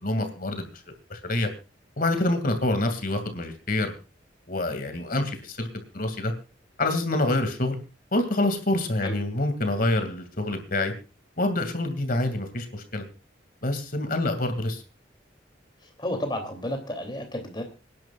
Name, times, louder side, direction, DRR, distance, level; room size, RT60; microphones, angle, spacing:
voice 1, 0.0-0.7 1.1-1.5 2.0-3.9 4.5-5.7 5.9-6.3 6.8-7.8 8.1-10.9 11.4-13.0 13.6-14.8, left 2 dB, 50° left, 7 dB, 2.4 m, -26 dB
voice 2, 16.0-17.6, left 1 dB, 25° left, 4 dB, 3.0 m, -31 dB
26.0 x 11.0 x 2.4 m, 0.31 s
head